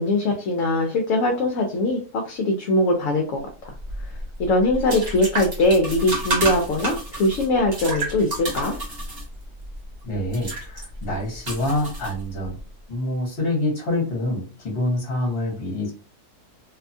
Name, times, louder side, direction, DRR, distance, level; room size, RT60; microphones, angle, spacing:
voice 1, 0.0-3.7 4.4-8.7, left 1 dB, 65° left, 2 dB, 0.8 m, -21 dB
sound 1, 3.7-12.6, right 2 dB, 45° right, 1.1 m, -31 dB
voice 2, 10.0-12.6 12.9-15.9, left 1 dB, 40° left, -2 dB, 1.2 m, -26 dB
2.7 x 2.2 x 2.6 m, 0.36 s
omnidirectional pair, 1.7 m